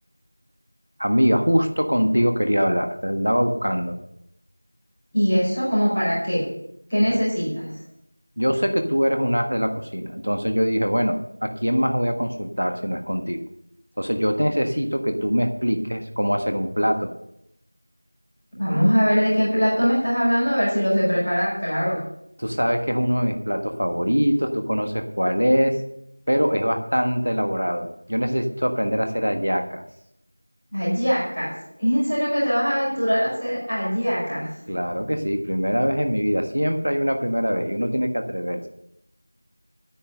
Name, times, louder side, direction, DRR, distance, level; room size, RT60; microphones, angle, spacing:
voice 1, 1.0-3.9 8.4-13.4 14.0-17.1 22.4-25.8 26.3-29.8 34.7-38.7, equal, 60° right, 5 dB, 1.4 m, -23 dB
voice 2, 5.1-6.4 6.9-7.6 18.5-22.0 30.7-31.5 31.8-34.5, equal, ahead, -23 dB, 2.2 m, -22 dB
10.0 x 10.0 x 6.6 m, 0.76 s
figure-of-eight pair, 180°, 0 cm